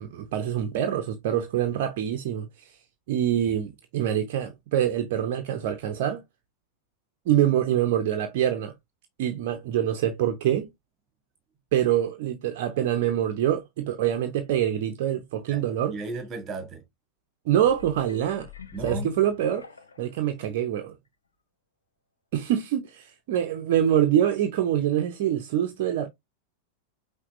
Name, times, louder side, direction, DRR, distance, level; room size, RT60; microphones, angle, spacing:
voice 1, 0.0-2.7 3.1-6.2 7.3-8.7 9.2-10.7 11.7-15.9 17.5-18.5 18.8-19.7 20.0-20.9 22.3-26.1, right 10 dB, 50° right, 0.7 m, -25 dB
voice 2, 15.9-16.8 18.7-19.1, right 4 dB, 25° right, 1.4 m, -35 dB
sound 1, 17.6-20.2 20.8-20.9, left 4 dB, 75° left, 0.6 m, -41 dB
5.8 x 2.6 x 2.6 m
figure-of-eight pair, 90°, 0 cm